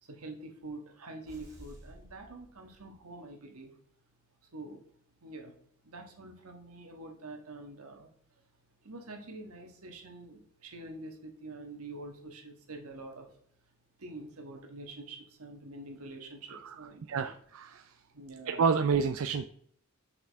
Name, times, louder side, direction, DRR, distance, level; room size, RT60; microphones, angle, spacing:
voice 1, 0.0-3.7 4.4-4.8 5.2-5.5 5.8-8.1 8.8-13.3 14.0-17.3 18.1-18.6, right 2 dB, 90° right, 3 dB, 1.5 m, -46 dB
sound 1, 1.3-3.1, equal, 15° right, 2.1 m, -53 dB
voice 2, 16.5-18.0 18.5-19.4, right 5 dB, 70° right, 7 dB, 0.4 m, -30 dB
6.5 x 5.9 x 3.5 m, 0.63 s
head